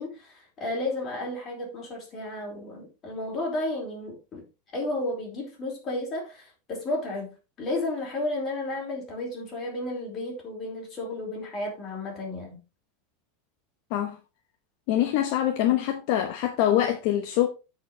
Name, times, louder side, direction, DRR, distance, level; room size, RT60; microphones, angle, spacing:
voice 1, 0.0-4.4 4.7-12.6, left 2 dB, 20° left, 4.2 m, -33 dB
voice 2, 14.9-17.5, left 12 dB, 45° left, 0.9 m, -24 dB
14.0 x 5.1 x 3.2 m
supercardioid pair, 175°, 0 cm